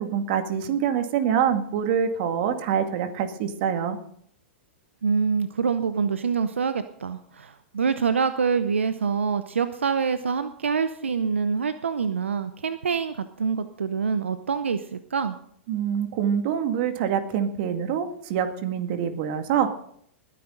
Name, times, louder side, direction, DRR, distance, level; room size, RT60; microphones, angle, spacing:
voice 1, 0.0-4.0 15.7-19.7, right 8 dB, 55° right, 7 dB, 2.0 m, -25 dB
voice 2, 5.0-15.4, right 6 dB, 85° right, 11 dB, 0.7 m, -26 dB
20.0 x 10.0 x 3.9 m, 0.65 s
hypercardioid pair, 110°, 6 cm